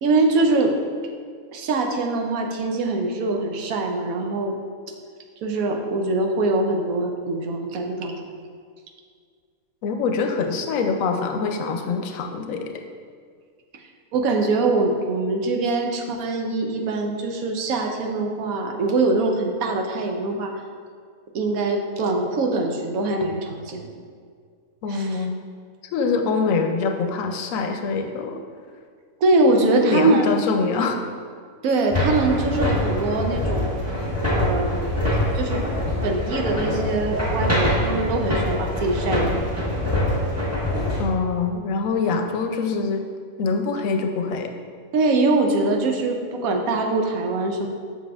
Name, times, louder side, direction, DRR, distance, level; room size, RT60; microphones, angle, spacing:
voice 1, 0.0-0.7 1.5-4.6 5.4-8.1 14.1-20.5 21.3-23.9 24.9-25.2 29.2-30.3 31.6-33.7 34.3-34.9 35.3-35.6 36.0-39.4 39.7-39.8 44.9-47.7, right 3 dB, 80° right, 3 dB, 1.1 m, -23 dB
voice 2, 9.8-12.8 24.8-25.4 25.9-28.4 29.6-31.0 41.0-43.1 43.4-44.5, left 4 dB, 75° left, 5 dB, 0.9 m, -24 dB
sound 1, 31.9-41.0, left 1 dB, 10° right, 1.4 m, -24 dB
7.3 x 6.0 x 2.3 m, 2.1 s
omnidirectional pair, 1.5 m